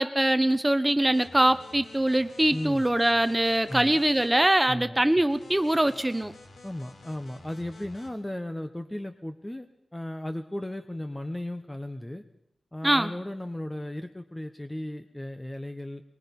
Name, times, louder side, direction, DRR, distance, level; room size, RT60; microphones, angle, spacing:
voice 1, 0.0-6.3 12.8-13.1, right 1 dB, 10° right, 12 dB, 1.2 m, -23 dB
sound 1, 1.0-4.4 5.3-8.1, left 2 dB, 90° left, 4.5 m, -51 dB
voice 2, 2.5-2.8 3.7-4.0 4.7-5.0 6.6-9.7 9.9-12.2 12.7-16.0, left 1 dB, 10° left, 7 dB, 1.2 m, -35 dB
23.5 x 21.5 x 5.5 m, 0.76 s
wide cardioid pair, 95°, 0 cm